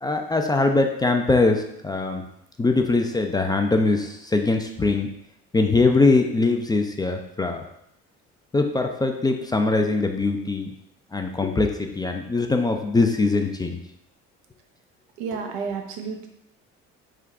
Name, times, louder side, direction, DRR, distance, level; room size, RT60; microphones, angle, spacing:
voice 1, 0.0-2.2 2.6-5.1 5.5-7.6 8.5-10.7 11.1-13.8, left 3 dB, 15° left, 4 dB, 0.3 m, -22 dB
voice 2, 15.2-16.3, right 5 dB, 85° right, 4 dB, 0.6 m, -31 dB
3.7 x 2.2 x 3.5 m, 0.75 s
supercardioid pair, 65°, 31 cm